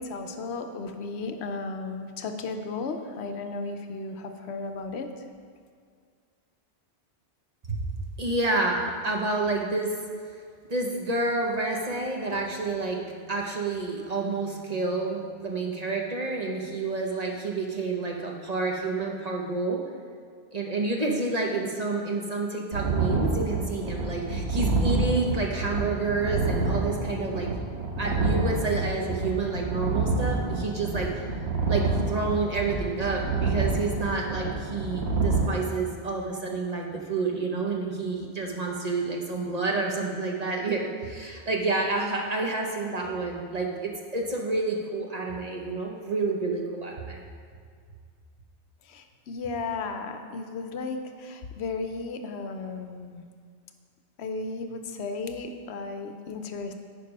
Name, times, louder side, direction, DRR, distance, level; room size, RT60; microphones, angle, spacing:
voice 1, 0.0-5.3 48.8-53.3 54.2-56.8, left 3 dB, 70° left, 7 dB, 0.9 m, -34 dB
voice 2, 8.2-9.9 10.7-13.0 13.3-19.8 20.5-27.5 28.0-31.3 31.7-47.2, right 3 dB, 40° right, 0 dB, 0.9 m, -29 dB
sound 1, 22.7-35.5, right 3 dB, 70° right, 1.3 m, -28 dB
9.3 x 5.1 x 5.3 m, 2.1 s
omnidirectional pair, 1.1 m